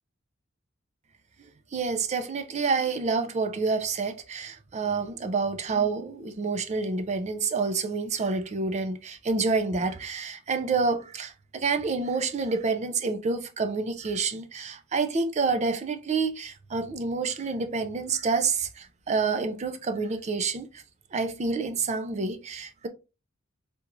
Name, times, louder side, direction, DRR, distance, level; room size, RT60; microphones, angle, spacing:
voice 1, 1.7-20.8 21.1-22.9, right 4 dB, 35° right, 0.4 m, -28 dB
3.4 x 3.0 x 2.5 m
head